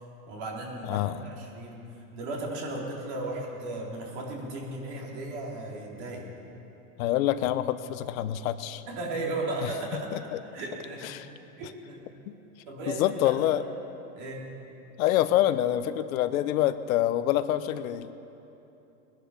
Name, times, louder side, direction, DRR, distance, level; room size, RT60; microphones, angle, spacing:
voice 1, 0.3-1.8 2.1-6.3 8.9-10.2 10.5-11.1 11.6-12.0 12.7-13.4 14.2-14.5, right 2 dB, 55° right, -2 dB, 3.6 m, -35 dB
voice 2, 0.9-1.2 7.0-8.8 10.1-10.4 11.0-11.3 12.3-12.4 12.9-13.6 15.0-18.1, left 13 dB, 70° left, 12 dB, 0.9 m, -26 dB
21.0 x 10.5 x 5.7 m, 2.9 s
supercardioid pair, 140°, 43 cm